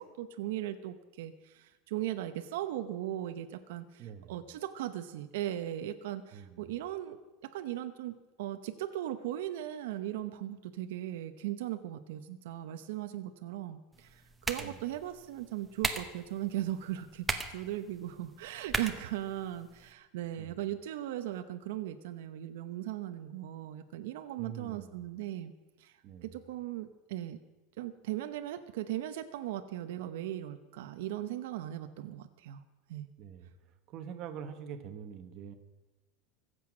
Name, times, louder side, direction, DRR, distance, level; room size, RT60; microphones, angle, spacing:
voice 1, 0.0-25.5 25.8-26.0 26.2-27.4 27.8-32.6 32.9-33.1, right 13 dB, 70° right, 8 dB, 0.9 m, -38 dB
voice 2, 4.0-4.3 6.3-6.7 14.6-14.8 20.4-20.6 24.4-24.9 26.0-26.3 33.2-33.5 33.9-35.5, right 8 dB, 35° right, 6 dB, 1.2 m, -44 dB
sound 1, 13.9-19.9, right 2 dB, 5° right, 0.9 m, -39 dB
24.0 x 8.0 x 6.2 m, 1.1 s
supercardioid pair, 180°, 0 cm